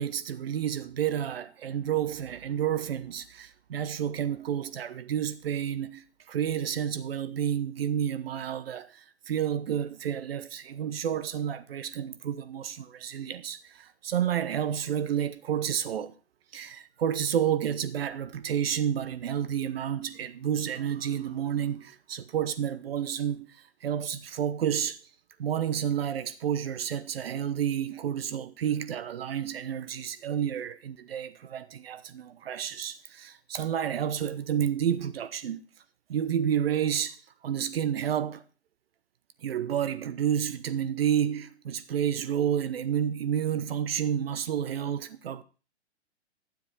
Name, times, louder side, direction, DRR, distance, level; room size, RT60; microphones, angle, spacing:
voice 1, 0.0-16.1 16.5-23.5 23.8-25.0 25.4-35.6 36.1-37.2 37.4-38.4 39.4-45.4, right 9 dB, 60° right, 1.0 m, -30 dB
12.0 x 7.6 x 3.8 m
figure-of-eight pair, 115°, 34 cm